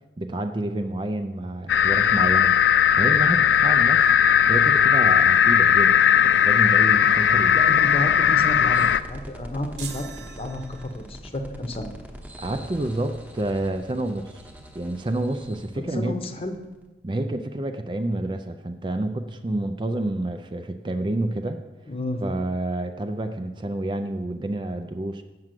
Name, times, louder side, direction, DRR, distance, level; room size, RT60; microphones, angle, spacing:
voice 1, 0.2-2.6 2.9-4.1 4.5-7.6 12.4-14.4 14.7-16.1 17.0-21.6 22.2-25.2, right 1 dB, 25° right, 7 dB, 0.4 m, -29 dB
sound 1, 1.7-9.0, left 8 dB, 75° left, 0.4 m, -18 dB
voice 2, 7.5-11.9 15.8-16.5 21.9-22.2, left 1 dB, 30° left, 6 dB, 0.8 m, -31 dB
sound 2, 8.7-16.9, equal, 10° right, 0.9 m, -43 dB
sound 3, 9.8-11.3, right 6 dB, 70° right, 0.9 m, -41 dB
7.6 x 6.0 x 7.5 m, 1.2 s
head